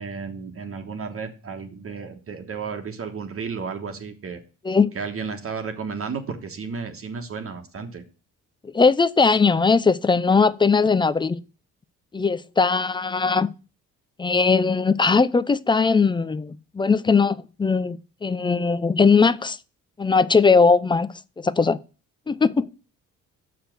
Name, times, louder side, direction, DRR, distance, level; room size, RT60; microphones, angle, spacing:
voice 1, 0.0-4.4 4.9-8.0, right 5 dB, 50° right, 1.3 m, -33 dB
voice 2, 8.6-11.4 12.1-13.5 14.2-19.6 20.0-21.8 22.3-22.7, left 4 dB, 15° left, 0.4 m, -19 dB
6.6 x 5.0 x 6.1 m
cardioid pair, 90°, 30 cm